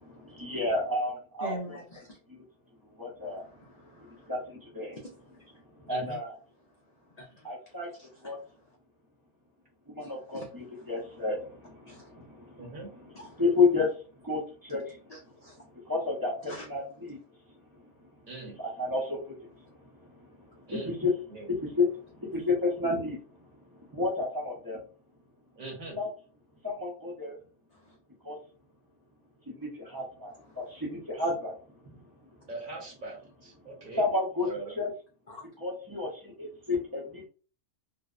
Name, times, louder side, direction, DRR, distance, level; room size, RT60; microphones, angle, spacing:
voice 1, 0.0-1.5 3.0-3.5 3.9-4.9 5.8-6.3 7.4-7.9 8.2-8.4 9.9-12.6 13.4-13.9 14.2-15.0 15.9-17.2 18.6-19.4 19.6-19.8 20.0-21.1 21.5-23.2 23.7-24.8 26.0-26.1 26.6-27.4 28.2-28.4 29.5-31.6 34.0-34.5 34.8-34.9 35.6-37.2, left 3 dB, 25° right, 0.5 m, -31 dB
voice 2, 1.4-2.2 3.2-4.3 5.0-5.1 5.9-6.0 7.2-7.5 8.0-8.1 8.3-8.6 10.0-10.8 11.9-12.1 13.2-13.3 15.1-15.6 16.5-16.6 27.7-28.0 30.5-30.6 35.3-35.5, equal, 60° left, 0.4 m, -45 dB
voice 3, 5.9-6.2 12.6-12.9 18.3-18.6 20.7-21.0 21.3-21.5 25.6-26.0 32.5-34.0 34.4-34.8, right 3 dB, 45° right, 0.9 m, -41 dB
2.6 x 2.0 x 2.3 m
omnidirectional pair, 1.3 m